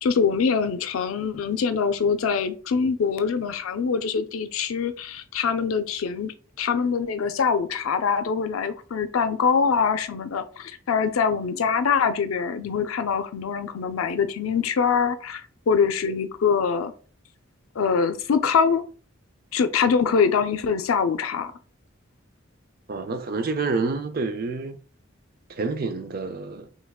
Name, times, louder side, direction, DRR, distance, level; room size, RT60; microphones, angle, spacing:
voice 1, 0.0-6.3 6.6-16.9 17.8-18.8 19.5-21.5, left 6 dB, 90° left, 0.4 m, -24 dB
voice 2, 22.9-24.8 25.6-26.7, right 4 dB, 45° right, 0.4 m, -28 dB
3.5 x 3.2 x 2.3 m
head